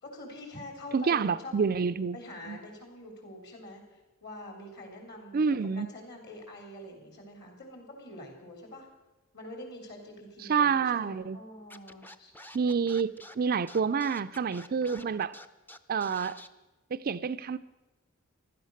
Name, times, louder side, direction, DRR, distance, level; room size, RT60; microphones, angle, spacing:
voice 1, 0.0-1.8 2.1-8.9 9.3-12.3, left 1 dB, 50° left, 3 dB, 3.9 m, -45 dB
voice 2, 0.9-2.2 2.5-2.6 5.3-5.9 10.5-11.4 12.5-15.4 15.9-16.4 16.9-17.6, right 6 dB, 45° right, 13 dB, 0.4 m, -28 dB
Scratching (performance technique), 11.7-16.5, left 1 dB, 10° left, 0.6 m, -48 dB
15.5 x 12.5 x 6.5 m, 1.1 s
head